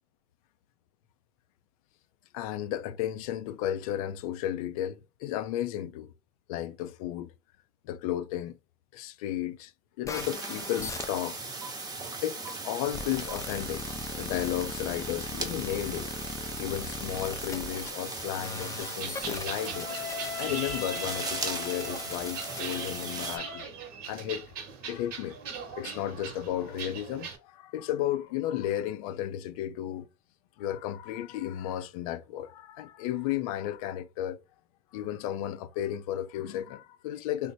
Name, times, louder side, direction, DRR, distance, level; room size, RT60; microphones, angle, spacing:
voice 1, 2.3-6.1 6.5-7.3 7.8-8.6 8.9-9.7 10.0-11.4 12.2-13.8 14.1-16.1 16.6-19.9 20.4-23.6 24.1-24.5 24.8-25.4 25.7-30.1 30.6-34.4 34.9-37.5, left 12 dB, 75° left, 0.5 m, -33 dB
sound 1, 10.0-23.6, left 4 dB, 15° left, 0.4 m, -40 dB
sound 2, 10.1-23.4, right 3 dB, 20° right, 0.8 m, -38 dB
sound 3, 18.8-27.4, right 6 dB, 55° right, 0.9 m, -41 dB
3.1 x 2.1 x 4.1 m
hypercardioid pair, 95°, 19 cm